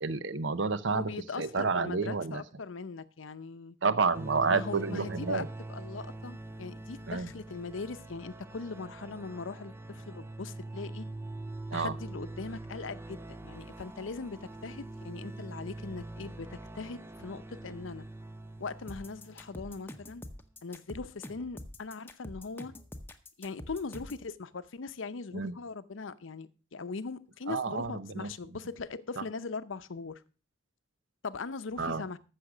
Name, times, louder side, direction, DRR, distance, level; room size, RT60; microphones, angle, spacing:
voice 1, 0.0-1.1 1.4-2.4 3.8-5.5 7.1-7.3 11.7-12.0 25.3-25.5 27.5-28.3 31.8-32.0, right 4 dB, 75° right, 0.8 m, -30 dB
voice 2, 0.9-3.8 4.5-11.1 11.7-18.1 18.6-20.2 20.6-22.7 23.4-30.2 31.2-32.2, left 4 dB, 85° left, 0.7 m, -40 dB
sound 1, 4.1-20.0, right 2 dB, 10° right, 0.5 m, -44 dB
sound 2, 18.9-24.3, left 1 dB, 10° left, 0.8 m, -45 dB
14.5 x 6.4 x 5.0 m
head